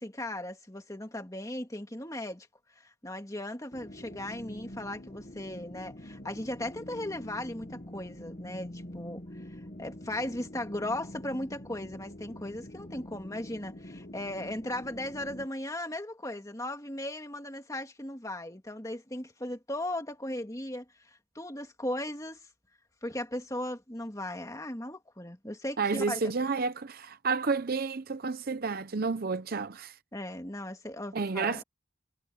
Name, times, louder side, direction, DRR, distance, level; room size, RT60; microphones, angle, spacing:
voice 1, 0.0-2.5 2.8-22.5 23.0-26.3 30.1-31.6, left 1 dB, 15° left, 2.5 m, -37 dB
sound 1, 3.7-15.5, left 1 dB, 40° left, 1.4 m, -45 dB
voice 2, 25.8-29.9 31.1-31.6, right 4 dB, 50° right, 0.7 m, -30 dB
head